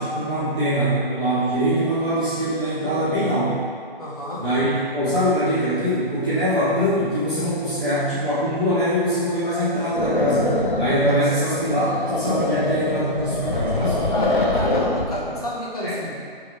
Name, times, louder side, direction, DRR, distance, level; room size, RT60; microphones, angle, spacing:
voice 1, 0.0-3.6 4.4-14.1 15.8-16.0, equal, 10° right, -16 dB, 0.7 m, -23 dB
voice 2, 4.0-4.4 11.0-11.2 14.1-16.1, left 1 dB, 40° left, -5 dB, 1.9 m, -30 dB
sound 1, 10.0-15.1, left 2 dB, 55° left, 1.2 m, -24 dB
8.8 x 4.7 x 4.6 m, 2.1 s
figure-of-eight pair, 150°, 30 cm